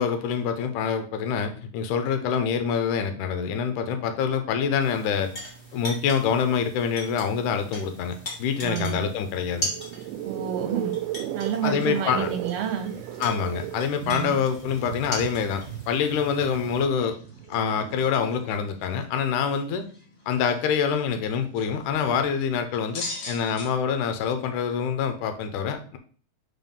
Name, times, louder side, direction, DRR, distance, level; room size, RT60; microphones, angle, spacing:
voice 1, 0.0-5.3 5.7-9.7 11.6-12.3 13.2-17.2 17.5-19.9 20.3-26.0, left 7 dB, 80° left, 8 dB, 2.2 m, -26 dB
sound 1, 4.8-16.8, equal, 20° left, 1.9 m, -39 dB
voice 2, 8.6-9.0 10.2-11.0 11.3-12.9 14.0-14.4, right 8 dB, 65° right, 4 dB, 1.9 m, -29 dB
sound 2, 9.4-18.2, right 13 dB, 85° right, 2.1 m, -36 dB
sound 3, 11.4-23.7, left 3 dB, 55° left, 1.3 m, -45 dB
4.8 x 4.0 x 5.3 m, 0.43 s
omnidirectional pair, 3.7 m